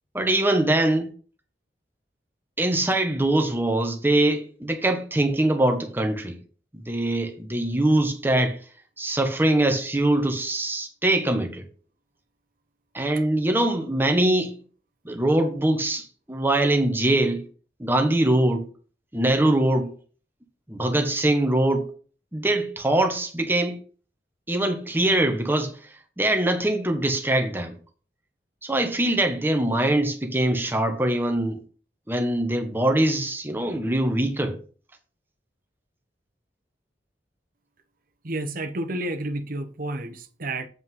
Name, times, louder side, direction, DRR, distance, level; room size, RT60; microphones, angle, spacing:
voice 1, 0.1-1.1 2.6-6.3 6.7-8.6 9.0-11.6 12.9-14.5 15.0-17.4 17.8-18.6 19.1-19.9 20.7-21.9 22.3-23.8 24.5-25.7 26.2-27.7 28.6-31.6 32.1-34.6, right 1 dB, 10° right, 1.3 m, -23 dB
voice 2, 38.2-40.7, right 1 dB, 55° right, 1.0 m, -30 dB
8.0 x 5.2 x 5.6 m
head